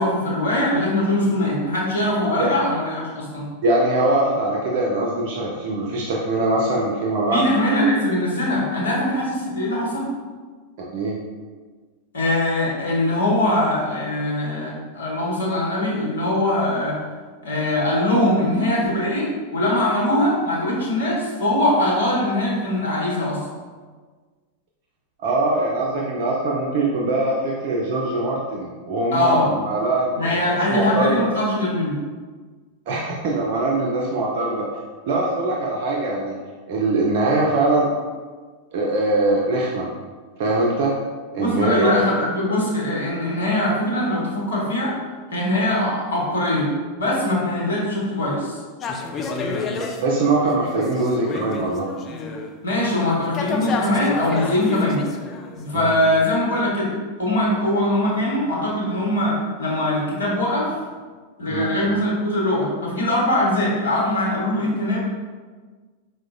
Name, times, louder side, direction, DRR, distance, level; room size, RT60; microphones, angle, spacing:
voice 1, 0.0-3.5 7.3-10.1 12.1-17.0 17.4-23.4 29.1-29.5 30.2-32.0 41.4-44.9 45.3-46.7 47.0-48.6 52.6-55.0 55.6-56.9 57.2-60.7 61.4-65.0, left 1 dB, 70° left, -4 dB, 1.0 m, -22 dB
voice 2, 3.6-7.5 10.8-11.2 25.2-31.3 32.9-34.7 35.1-36.4 36.7-37.9 38.7-39.9 40.4-40.9 41.3-42.2 50.0-51.9 55.7-55.9 61.4-61.7, right 2 dB, 50° right, -3 dB, 0.4 m, -22 dB
sound 1, 48.8-52.5 52.8-55.7, left 3 dB, 25° left, 0.3 m, -30 dB
4.6 x 2.1 x 2.5 m, 1.4 s
figure-of-eight pair, 90°, 0 cm